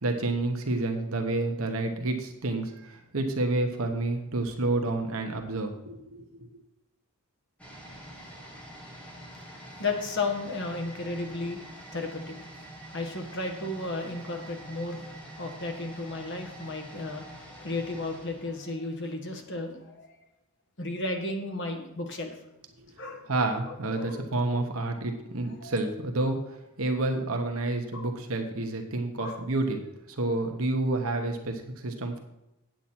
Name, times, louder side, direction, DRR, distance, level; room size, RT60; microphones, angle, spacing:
voice 1, 0.0-6.5 22.8-22.9 23.3-26.4 26.8-29.8 30.1-32.2, right 2 dB, 65° right, 4 dB, 1.1 m, -29 dB
sound 1, 7.6-19.3 19.6-19.7, right 1 dB, 5° left, 1.9 m, -46 dB
voice 2, 9.5-12.4 12.9-15.1 15.4-20.2 20.8-22.4 23.0-23.2 23.7-24.6 25.6-25.8 27.9-28.1 29.2-29.4, left 2 dB, 55° left, 4 dB, 1.4 m, -34 dB
9.0 x 8.2 x 4.4 m, 0.90 s
head